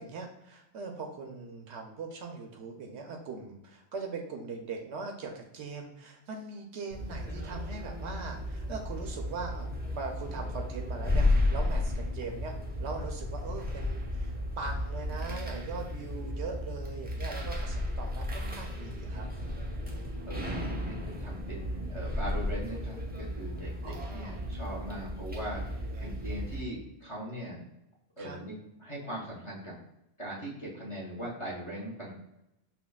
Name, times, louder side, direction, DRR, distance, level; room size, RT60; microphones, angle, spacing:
voice 1, 0.0-19.3 19.8-20.1 23.8-24.4 25.8-26.3 28.2-28.4, right 4 dB, 70° right, 3 dB, 0.8 m, -41 dB
sound 1, 6.9-26.6, left 1 dB, 10° right, 0.4 m, -34 dB
voice 2, 18.4-19.2 20.3-27.6 28.2-29.8 30.2-32.2, equal, 25° left, -5 dB, 1.0 m, -40 dB
5.7 x 2.2 x 2.2 m, 0.88 s
omnidirectional pair, 1.2 m